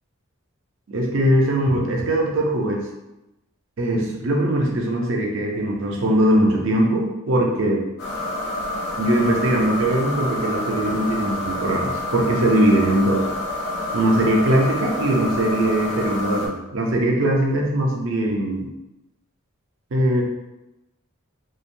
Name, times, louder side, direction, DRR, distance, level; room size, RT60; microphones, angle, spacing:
voice 1, 0.9-2.8 3.8-7.8 9.0-13.2 13.9-18.7 19.9-20.2, right 1 dB, 60° right, 0 dB, 0.5 m, -21 dB
sound 1, 8.0-16.5, left 1 dB, 50° left, 0.7 m, -28 dB
2.9 x 2.0 x 2.6 m, 0.96 s
head